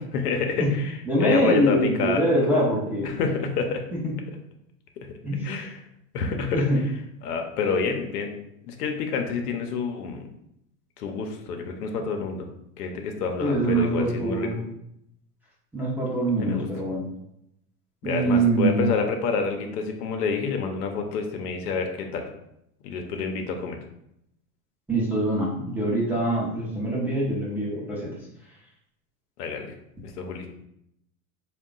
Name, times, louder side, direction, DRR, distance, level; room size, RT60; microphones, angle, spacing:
voice 1, 0.1-3.8 5.0-5.1 5.4-5.8 6.1-6.9 7.2-8.3 8.6-10.2 11.0-12.5 12.8-14.7 16.4-16.7 18.0-22.3 22.8-23.8 29.4-29.7 30.0-30.6, left 5 dB, 80° left, 4 dB, 0.8 m, -28 dB
voice 2, 1.1-3.1 4.0-4.1 5.2-5.5 6.5-6.8 13.4-14.6 15.7-17.0 18.0-18.9 24.9-28.1, right 1 dB, 5° right, -6 dB, 0.7 m, -24 dB
3.5 x 2.3 x 3.8 m, 0.79 s
supercardioid pair, 130°, 46 cm